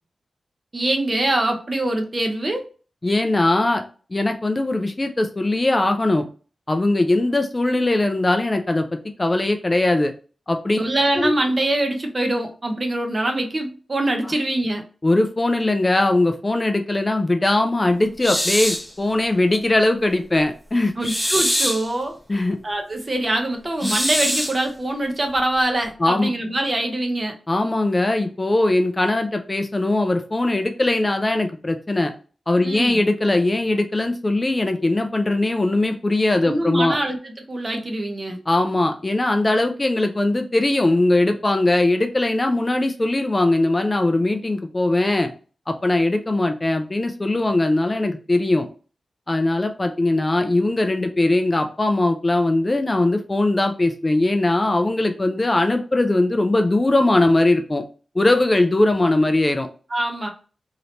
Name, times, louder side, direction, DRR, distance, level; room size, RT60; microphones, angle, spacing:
voice 1, 0.7-2.7 10.8-14.8 21.0-22.2 22.6-27.4 32.6-33.0 36.4-38.4 59.9-60.3, right 1 dB, 30° right, 4 dB, 0.6 m, -24 dB
voice 2, 3.0-3.8 4.1-6.3 6.7-10.1 10.5-10.8 11.2-11.3 15.0-20.9 22.3-22.6 23.8-23.9 26.0-26.3 27.5-32.1 32.5-37.0 38.5-45.3 45.7-48.7 49.3-57.8 58.2-59.7, left 2 dB, 25° left, 6 dB, 0.3 m, -20 dB
sound 1, 18.2-18.9 21.0-21.9 23.8-24.6, equal, ahead, 0.9 m, -23 dB
2.8 x 2.7 x 3.1 m, 0.38 s
wide cardioid pair, 135°, 0 cm